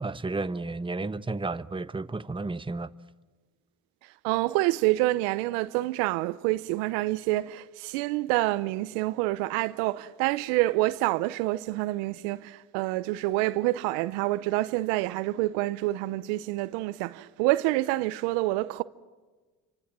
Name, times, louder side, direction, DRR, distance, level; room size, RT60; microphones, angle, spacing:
voice 1, 0.0-2.9, right 3 dB, 15° right, 1.0 m, -32 dB
voice 2, 4.2-18.8, right 18 dB, 85° right, 0.8 m, -27 dB
28.5 x 25.0 x 7.5 m
hypercardioid pair, 60°, 39 cm